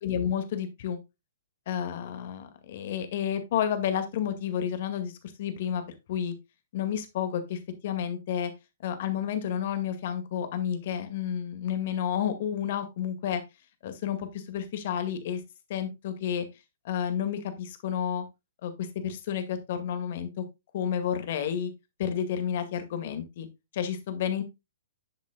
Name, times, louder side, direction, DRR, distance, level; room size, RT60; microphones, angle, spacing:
voice 1, 0.0-1.0 1.7-5.1 5.4-5.8 6.1-6.3 6.7-8.5 8.8-13.4 13.8-15.4 15.7-16.5 16.8-18.3 18.6-20.4 20.7-21.7 22.0-23.5 23.7-24.4, left 9 dB, 50° left, 9 dB, 2.0 m, -30 dB
10.5 x 7.3 x 2.3 m, 0.23 s
figure-of-eight pair, 120°, 0 cm